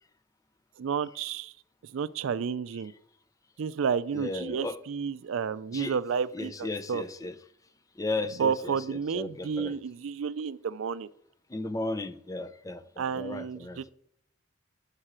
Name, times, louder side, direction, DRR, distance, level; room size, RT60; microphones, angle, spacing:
voice 1, 0.8-1.5 1.9-2.9 3.6-7.0 8.4-11.1 13.0-13.9, right 6 dB, 75° right, 0.4 m, -31 dB
voice 2, 4.1-4.8 5.7-6.0 6.3-7.4 8.0-9.8 11.5-13.9, left 2 dB, 15° left, 0.5 m, -35 dB
11.5 x 4.9 x 4.4 m
head